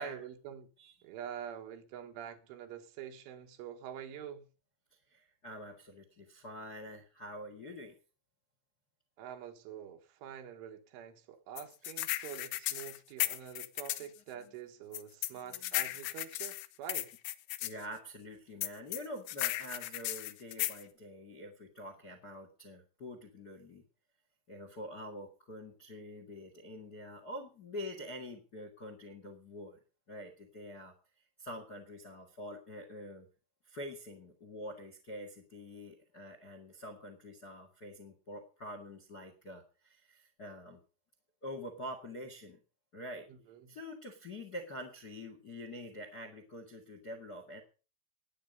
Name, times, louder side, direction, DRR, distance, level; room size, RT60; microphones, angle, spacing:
voice 1, 0.0-0.7 1.0-4.5 9.2-17.2 43.3-43.7, right 9 dB, 90° right, 4.1 m, -46 dB
voice 2, 5.1-8.0 14.4-14.5 15.3-15.8 17.6-23.8 24.5-29.8 30.1-30.9 31.4-33.3 33.6-40.8 41.4-42.6 42.9-43.3 43.7-47.6, equal, 55° left, 1.1 m, -46 dB
sound 1, 11.6-14.1 14.9-17.7 18.6-20.8, left 16 dB, 80° left, 3.0 m, -35 dB
18.5 x 8.9 x 5.3 m
omnidirectional pair, 5.4 m